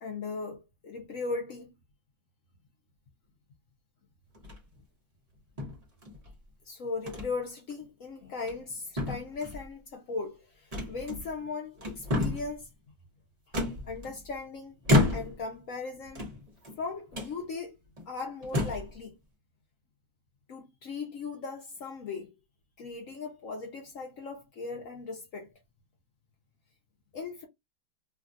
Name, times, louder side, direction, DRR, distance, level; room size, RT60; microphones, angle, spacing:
voice 1, 0.0-1.7 6.7-12.7 13.9-14.7 15.1-16.3 16.8-17.7 18.1-19.1 20.5-22.3 22.8-25.5 27.1-27.5, left 4 dB, 60° left, 0.9 m, -38 dB
sound 1, 4.3-4.8 5.6-6.3 7.1-7.3 7.7-7.8 8.3-8.7 9.0-9.7 10.7-11.4 11.8-12.6 13.5-14.4 14.8-15.5 16.1-16.7 17.1-17.3 18.0-18.1 18.4-18.9, left 2 dB, 30° right, 0.8 m, -30 dB
3.2 x 2.4 x 2.5 m
omnidirectional pair, 2.0 m